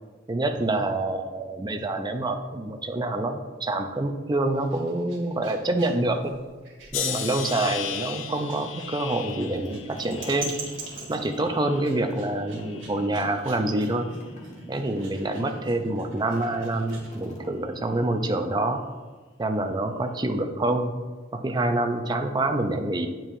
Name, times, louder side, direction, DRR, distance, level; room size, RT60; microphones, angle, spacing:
voice 1, 0.3-6.4 6.9-10.5 11.1-14.1 14.7-18.8 19.4-20.9 21.3-23.1, right 2 dB, 20° right, 5 dB, 0.5 m, -26 dB
sound 1, 4.5-17.2, right 4 dB, 75° right, 1.4 m, -44 dB
sound 2, 6.9-12.1 12.5-13.2 13.9-14.2, left 8 dB, 85° left, 0.5 m, -36 dB
sound 3, 9.2-18.1, equal, 40° left, 1.2 m, -44 dB
8.7 x 4.5 x 2.6 m, 1.3 s
head